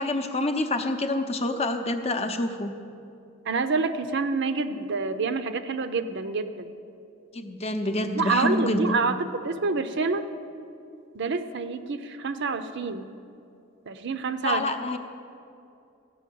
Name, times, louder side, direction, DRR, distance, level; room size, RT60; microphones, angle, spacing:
voice 1, 0.0-2.7 7.3-9.0 14.4-15.0, left 1 dB, 30° left, 6 dB, 0.7 m, -27 dB
voice 2, 3.5-6.7 8.2-10.3 11.1-13.1 13.9-14.6, right 4 dB, 60° right, 10 dB, 0.6 m, -27 dB
14.0 x 6.1 x 8.4 m, 2.6 s
head